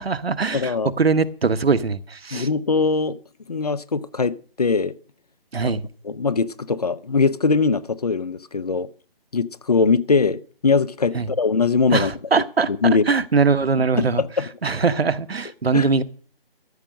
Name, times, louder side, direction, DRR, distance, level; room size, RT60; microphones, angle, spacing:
voice 1, 0.0-2.5 5.5-5.8 11.1-11.3 11.9-12.7 13.1-14.2 14.6-16.0, right 4 dB, 80° right, 1.1 m, -21 dB
voice 2, 0.5-0.9 2.3-3.2 3.5-4.9 5.6-5.7 6.0-8.9 9.3-12.1 12.8-13.0 14.0-14.5 15.7-15.9, left 4 dB, 40° left, 0.6 m, -21 dB
13.0 x 7.7 x 6.3 m
figure-of-eight pair, 160°, 30 cm